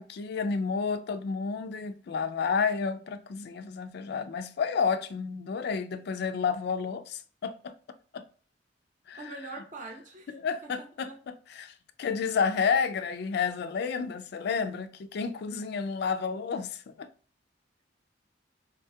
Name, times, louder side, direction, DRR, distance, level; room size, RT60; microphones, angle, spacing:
voice 1, 0.0-7.7 8.1-8.2 9.1-9.2 10.4-17.1, left 5 dB, 60° left, 0.3 m, -31 dB
voice 2, 9.2-10.3 10.6-11.2, right 3 dB, 45° right, 0.7 m, -43 dB
3.8 x 2.2 x 2.7 m
head